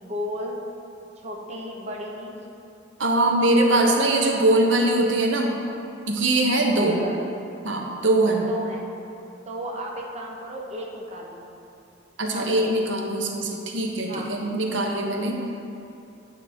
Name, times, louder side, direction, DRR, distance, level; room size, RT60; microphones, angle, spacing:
voice 1, 0.0-0.6 1.2-2.4 6.7-7.3 8.4-8.8 9.5-11.4 12.3-12.7 14.1-14.3, equal, 35° right, -1 dB, 0.9 m, -34 dB
voice 2, 3.0-5.6 6.1-7.0 7.6-8.5 12.2-15.4, right 2 dB, 75° right, 1 dB, 0.8 m, -22 dB
9.2 x 6.1 x 4.2 m, 2.7 s
head